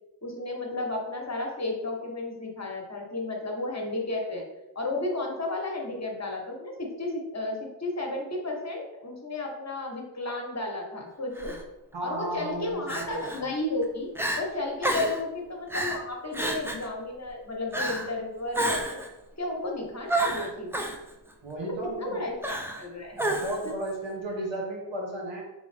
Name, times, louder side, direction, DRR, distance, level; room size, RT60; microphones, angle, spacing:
voice 1, 0.2-4.4 4.7-11.6 12.0-14.1 14.4-19.0 19.4-20.7 21.6-23.2, left 2 dB, 35° left, 0 dB, 1.0 m, -33 dB
Crying sobbing, 11.4-11.6 12.9-13.4 13.8-13.9 14.2-14.4 14.8-15.2 15.7-16.0 16.3-16.9 17.7-18.1 18.5-19.1 20.1-21.0 22.4-22.9 23.2-23.7, right 1 dB, 5° right, 0.4 m, -29 dB
voice 2, 11.9-13.5 21.4-22.2 23.2-25.4, right 1 dB, 80° right, -2 dB, 1.3 m, -34 dB
3.7 x 3.5 x 3.3 m, 0.97 s
wide cardioid pair, 60°, 44 cm